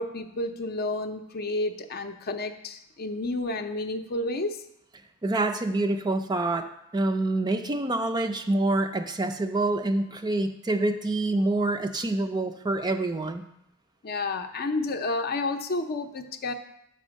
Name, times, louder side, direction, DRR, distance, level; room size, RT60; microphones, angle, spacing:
voice 1, 0.0-4.6 14.0-16.5, left 2 dB, 45° left, 7 dB, 0.6 m, -30 dB
voice 2, 5.2-13.4, right 2 dB, 20° right, 7 dB, 0.4 m, -26 dB
5.8 x 5.5 x 6.2 m, 0.80 s
head